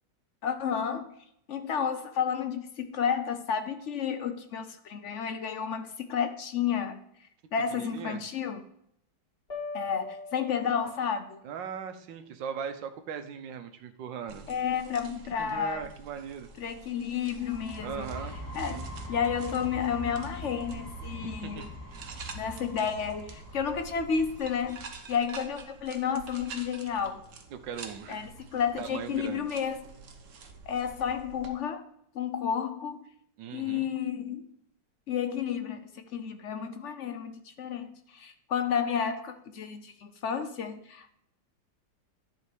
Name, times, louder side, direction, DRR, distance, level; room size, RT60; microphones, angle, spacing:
voice 1, 0.4-1.1 1.5-7.0 7.5-8.6 9.7-11.4 14.5-15.9 16.6-18.1 18.5-18.8 19.1-21.7 22.3-24.8 25.1-27.2 28.1-29.8 30.7-31.8 32.1-33.1 33.5-34.5 35.1-35.8 36.1-41.1, left 7 dB, 60° left, 8 dB, 0.8 m, -31 dB
voice 2, 7.7-8.2 11.4-14.4 15.4-16.5 17.8-18.4 18.7-18.9 21.4-21.7 27.6-28.3 28.8-29.6 33.4-33.9, right 7 dB, 80° right, 9 dB, 1.5 m, -39 dB
sound 1, 9.5-11.4, left 3 dB, 35° left, 2.0 m, -41 dB
sound 2, 14.3-31.5, right 5 dB, 50° right, 1.1 m, -48 dB
sound 3, 17.4-25.0, equal, 10° left, 2.1 m, -42 dB
11.0 x 4.4 x 4.9 m, 0.70 s
omnidirectional pair, 2.0 m